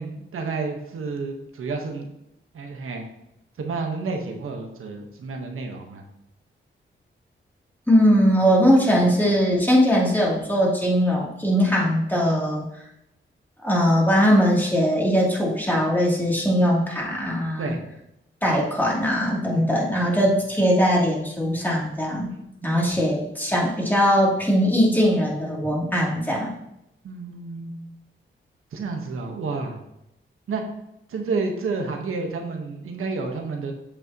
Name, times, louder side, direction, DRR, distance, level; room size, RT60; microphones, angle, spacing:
voice 1, 0.0-2.1 2.5-3.0 3.6-6.0 17.6-17.8 19.5-20.0 22.3-22.4 22.6-22.8 27.0-27.9 28.7-29.8 30.5-30.6 31.1-33.7, right 4 dB, 85° right, 2 dB, 1.3 m, -30 dB
voice 2, 7.9-12.6 13.6-17.7 18.4-22.3 22.6-26.5, equal, 10° left, -4 dB, 2.9 m, -20 dB
8.2 x 6.7 x 3.0 m, 0.82 s
cardioid pair, 70°, 21 cm